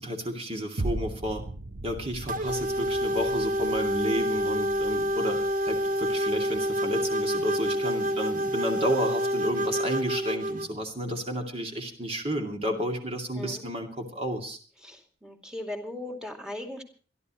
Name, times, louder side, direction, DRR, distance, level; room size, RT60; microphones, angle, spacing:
voice 1, 0.0-1.4 1.8-5.4 5.7-14.6, equal, 35° right, 3 dB, 2.5 m, -31 dB
sound 1, 0.8-9.3 9.8-9.9, right 2 dB, 85° right, 0.9 m, -40 dB
sound 2, 2.3-10.7, equal, 50° right, 0.9 m, -28 dB
voice 2, 14.8-16.8, left 1 dB, 5° right, 4 dB, 2.4 m, -38 dB
27.0 x 11.5 x 3.1 m, 0.40 s
head